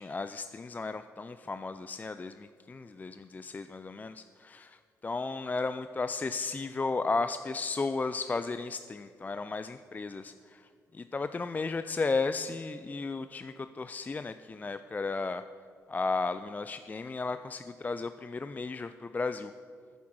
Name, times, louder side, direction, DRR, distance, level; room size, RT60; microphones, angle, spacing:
voice 1, 0.0-15.4 15.9-19.5, left 3 dB, 25° left, 11 dB, 0.3 m, -34 dB
9.4 x 7.1 x 6.1 m, 2.2 s
supercardioid pair, 60°, 6 cm